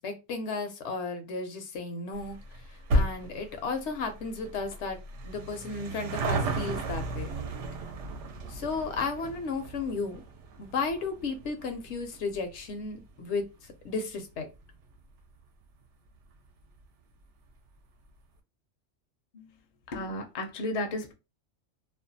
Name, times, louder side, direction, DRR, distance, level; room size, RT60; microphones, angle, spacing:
voice 1, 0.0-5.0 5.2-7.3 8.5-10.2 10.6-14.5, left 4 dB, 70° left, 0.8 m, -34 dB
sound 1, 2.1-14.9 15.2-15.3 16.2-16.3 16.5-16.6 16.8-16.9, right 1 dB, 75° right, 0.9 m, -35 dB
voice 2, 19.9-21.1, left 1 dB, 45° left, 0.5 m, -33 dB
2.5 x 2.1 x 2.6 m
omnidirectional pair, 1.2 m